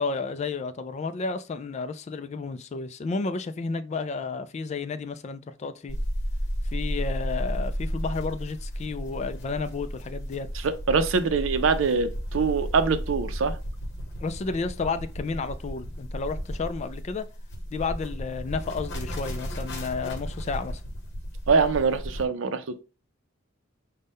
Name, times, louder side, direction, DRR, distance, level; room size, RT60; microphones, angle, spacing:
voice 1, 0.0-6.0 6.7-10.5 14.2-17.3 17.7-20.8, left 4 dB, 35° left, 0.3 m, -32 dB
Flange Feedback, 5.9-22.3, equal, 60° left, 0.9 m, -33 dB
voice 2, 10.6-13.6 21.5-22.8, right 5 dB, 80° right, 0.5 m, -24 dB
5.2 x 2.2 x 3.5 m
head